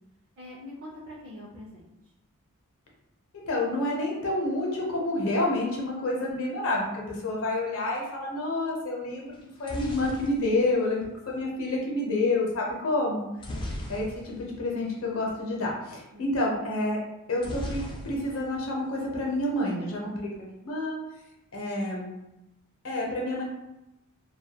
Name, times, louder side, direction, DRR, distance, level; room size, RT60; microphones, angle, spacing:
voice 1, 0.4-1.9 13.5-13.9 16.1-16.3, left 1 dB, 55° right, -5 dB, 0.5 m, -44 dB
voice 2, 3.5-13.2 13.9-17.0 17.3-21.0 21.5-22.1 22.8-23.4, left 2 dB, 65° left, -2 dB, 0.7 m, -29 dB
sound 1, 9.3-11.5 13.4-14.6 14.9-15.0 15.2-15.5 17.4-18.6 18.9-19.5, left 1 dB, 20° left, 0.3 m, -37 dB
2.2 x 2.2 x 2.8 m, 0.91 s
head